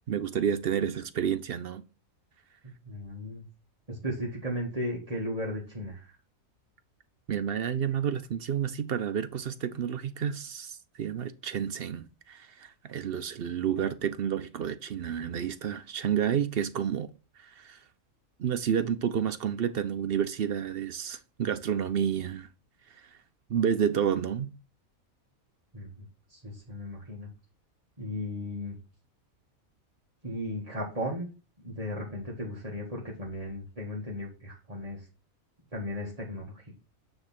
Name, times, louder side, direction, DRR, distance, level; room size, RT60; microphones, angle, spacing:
voice 1, 0.1-1.9 7.3-17.1 17.4-17.8 18.4-22.5 22.9-23.1 23.5-24.5, right 8 dB, 60° right, 0.7 m, -30 dB
voice 2, 2.8-3.4 3.9-6.2 25.7-27.3 28.0-28.8 30.2-31.3 31.6-35.1 35.7-36.7, left 1 dB, 25° right, 1.8 m, -36 dB
9.1 x 3.5 x 5.8 m
omnidirectional pair, 1.5 m